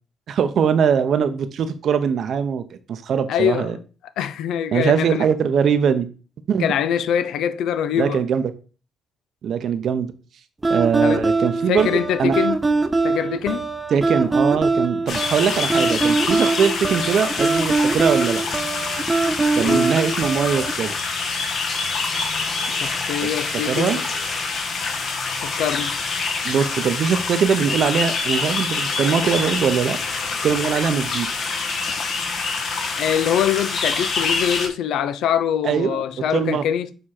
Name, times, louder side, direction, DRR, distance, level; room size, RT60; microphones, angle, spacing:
voice 1, 0.3-2.6 2.9-3.8 4.7-6.1 6.5-6.7 8.0-8.4 9.4-10.1 10.7-12.4 13.9-18.4 19.5-20.9 23.2-23.3 23.6-24.0 26.4-30.0 30.4-31.3 35.6-36.0 36.3-36.6, right 7 dB, 65° right, 0.7 m, -21 dB
voice 2, 3.3-3.7 4.2-5.3 6.6-8.2 11.0-11.3 11.7-12.6 13.0-13.7 19.6-19.9 22.7-24.0 25.4-25.9 33.0-36.9, left 9 dB, 80° left, 0.5 m, -23 dB
sound 1, 10.6-20.7, right 3 dB, 20° right, 0.7 m, -22 dB
sound 2, 15.1-34.7, left 4 dB, 60° left, 1.3 m, -26 dB
sound 3, 18.5-25.3, equal, 10° left, 1.3 m, -38 dB
6.6 x 3.6 x 4.4 m
cardioid pair, 90°, 0 cm